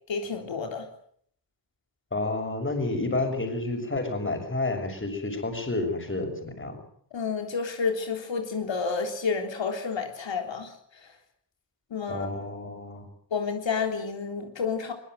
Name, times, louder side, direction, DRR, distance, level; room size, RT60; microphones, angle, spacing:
voice 1, 0.1-0.9 7.1-10.7 11.0-11.1 11.9-12.3 13.3-14.9, left 5 dB, 90° left, 3 dB, 3.7 m, -30 dB
voice 2, 2.1-6.8 12.1-13.1, left 2 dB, 25° left, 5 dB, 6.5 m, -30 dB
23.0 x 22.0 x 7.9 m, 0.64 s
wide cardioid pair, 120°, 44 cm